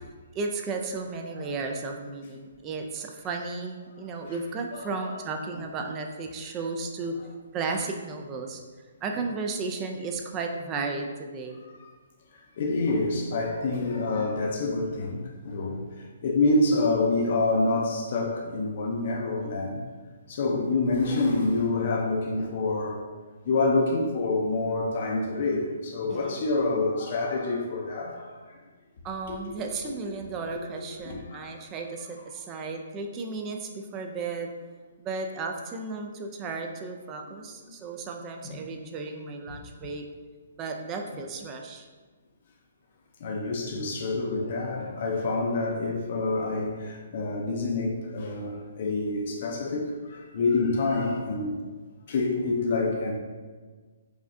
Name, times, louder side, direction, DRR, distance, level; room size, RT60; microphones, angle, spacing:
voice 1, 0.4-7.2 7.5-8.6 9.0-11.6 26.1-26.4 29.0-34.5 35.0-40.0 40.6-41.9, right 4 dB, 20° right, 3 dB, 0.3 m, -34 dB
voice 2, 4.7-5.2 5.5-5.6 12.6-15.8 16.2-19.8 20.3-23.0 23.5-28.3 30.5-30.6 31.0-31.5 38.4-38.6 39.5-39.6 41.1-41.2 43.2-51.6 52.1-53.1, left 3 dB, 50° left, 0 dB, 0.5 m, -27 dB
4.8 x 2.3 x 2.5 m, 1.4 s
hypercardioid pair, 155°, 0 cm